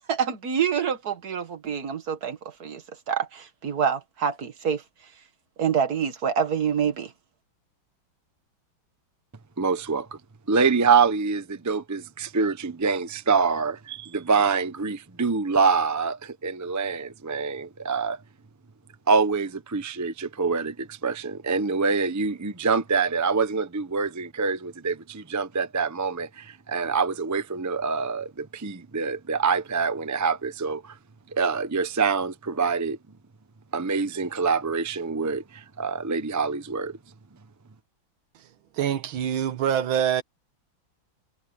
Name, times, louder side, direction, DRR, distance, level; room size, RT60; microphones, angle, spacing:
voice 1, 0.0-4.8 5.6-7.1, right 7 dB, 50° right, 2.1 m, -27 dB
voice 2, 9.6-10.2 10.5-18.2 19.1-31.0 31.3-33.0 33.7-37.0, right 5 dB, 25° right, 0.4 m, -25 dB
voice 3, 38.7-40.2, right 9 dB, 90° right, 1.8 m, -25 dB
omnidirectional pair, 2.2 m